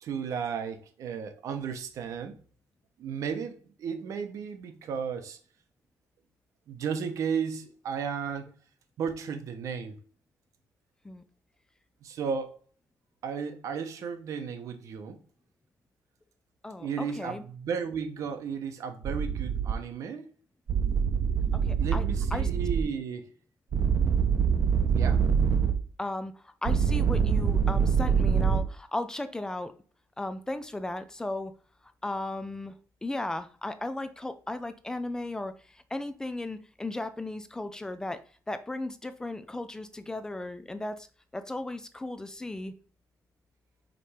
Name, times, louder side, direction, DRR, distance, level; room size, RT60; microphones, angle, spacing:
voice 1, 0.0-2.3 3.0-5.4 6.7-8.5 9.0-10.0 12.0-12.6 13.2-15.2 16.8-20.3 21.8-23.3 24.9-25.2, right 6 dB, 65° right, 8 dB, 1.0 m, -34 dB
voice 2, 16.6-17.4 21.5-22.0 22.3-22.5 26.0-29.7 30.2-31.5 32.0-32.7 33.0-38.2 38.5-41.1 41.3-42.7, left 2 dB, 10° left, 10 dB, 0.4 m, -35 dB
sound 1, 19.0-19.7 20.7-22.8 23.7-25.7 26.7-28.6, right 6 dB, 40° right, 0.8 m, -25 dB
5.1 x 4.3 x 4.9 m, 0.41 s
cardioid pair, 170°, 6 cm